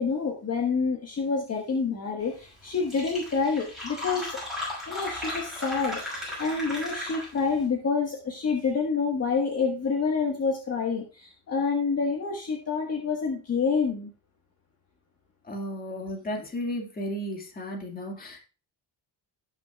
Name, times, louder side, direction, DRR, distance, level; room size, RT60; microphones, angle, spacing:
voice 1, 0.0-4.4 4.9-14.1, left 5 dB, 35° left, 0 dB, 1.4 m, -28 dB
Fill (with liquid), 2.4-2.5 2.7-7.5, left 1 dB, ahead, 5.8 m, -35 dB
voice 2, 15.4-18.4, equal, 20° left, 0 dB, 2.0 m, -34 dB
17.5 x 6.1 x 2.3 m, 0.35 s
cardioid pair, 160°, 41 cm